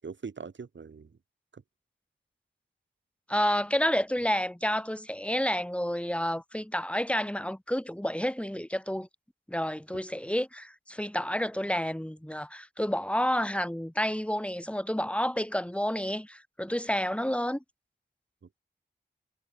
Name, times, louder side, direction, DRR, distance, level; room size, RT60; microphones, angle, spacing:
voice 1, 0.0-1.1 1.5-1.6 18.4-18.6, right 5 dB, 85° right, 6.1 m, -42 dB
voice 2, 3.3-9.1 9.5-17.6, equal, 5° left, 2.3 m, -30 dB
wide cardioid pair, 60°, 19 cm